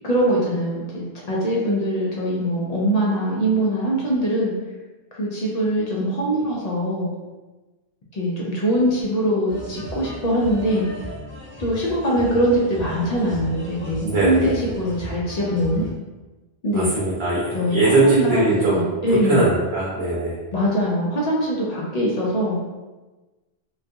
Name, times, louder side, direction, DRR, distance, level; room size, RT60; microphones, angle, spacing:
voice 1, 0.0-4.5 5.1-7.1 8.1-10.9 11.6-15.8 16.6-16.9 17.5-19.5 20.5-22.6, equal, 55° left, -4 dB, 0.5 m, -22 dB
sound 1, 9.5-15.9, equal, 15° right, 0.4 m, -35 dB
voice 2, 14.0-14.6 16.7-18.8 19.3-20.4, right 2 dB, 80° right, -6 dB, 0.8 m, -20 dB
2.3 x 2.2 x 2.6 m, 1.2 s
omnidirectional pair, 1.0 m